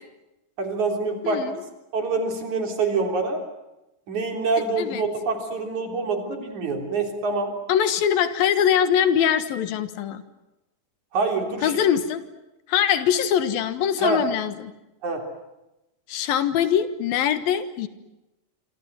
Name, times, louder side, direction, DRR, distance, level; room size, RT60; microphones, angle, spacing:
voice 1, 0.6-1.4 1.9-3.4 4.1-7.5 11.1-11.7 14.0-14.2 15.0-15.2, right 3 dB, 55° right, 4 dB, 4.9 m, -25 dB
voice 2, 1.2-1.6 4.8-5.1 7.7-10.2 11.6-12.2 12.7-14.7 16.1-17.9, left 9 dB, 85° left, 11 dB, 3.2 m, -22 dB
27.0 x 25.5 x 7.7 m, 0.96 s
omnidirectional pair, 4.1 m